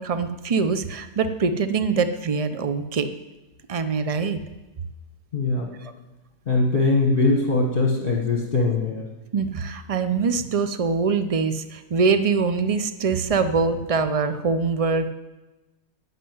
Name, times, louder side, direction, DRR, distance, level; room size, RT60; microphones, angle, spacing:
voice 1, 0.0-3.1 3.7-4.4 5.8-5.9 9.3-15.1, right 5 dB, 60° right, 10 dB, 0.3 m, -23 dB
voice 2, 5.3-5.7 6.5-9.1, left 3 dB, 35° left, 0 dB, 1.4 m, -21 dB
11.0 x 8.2 x 9.4 m, 1.1 s
omnidirectional pair, 1.7 m